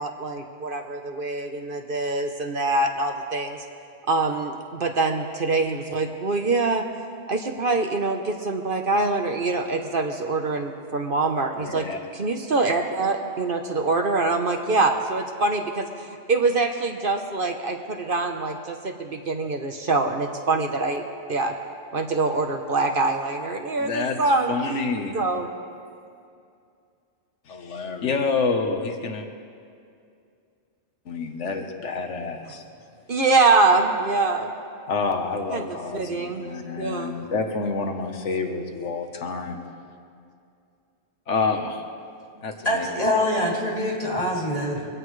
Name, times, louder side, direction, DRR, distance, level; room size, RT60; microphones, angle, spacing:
voice 1, 0.0-3.6 4.1-6.8 7.3-11.8 12.1-21.0 21.3-21.5 21.9-24.8 25.1-25.5 33.1-34.5 35.5-35.7 35.9-36.4 36.8-37.1, right 3 dB, 50° right, 4 dB, 1.1 m, -24 dB
voice 2, 11.6-12.0 23.8-25.2 27.5-29.3 31.1-32.6 34.9-39.6 41.3-41.8 42.4-42.9, left 4 dB, 85° left, 4 dB, 1.5 m, -28 dB
voice 3, 42.6-44.9, left 1 dB, 30° left, -5 dB, 3.3 m, -24 dB
23.5 x 16.5 x 3.2 m, 2.4 s
omnidirectional pair, 1.2 m